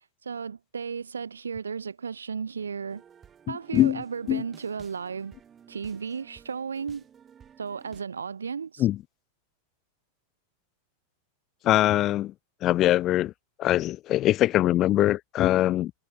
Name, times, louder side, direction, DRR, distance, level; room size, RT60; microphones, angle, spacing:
voice 1, 0.2-3.0 3.5-5.3 5.7-7.0 7.6-8.9, right 6 dB, 70° right, 0.7 m, -34 dB
sound 1, 2.9-8.0, right 8 dB, 25° right, 1.8 m, -54 dB
voice 2, 3.5-4.4 8.8-9.0 11.6-12.3 12.6-13.3 13.6-15.9, left 14 dB, 35° left, 0.4 m, -23 dB
figure-of-eight pair, 90°, 0 cm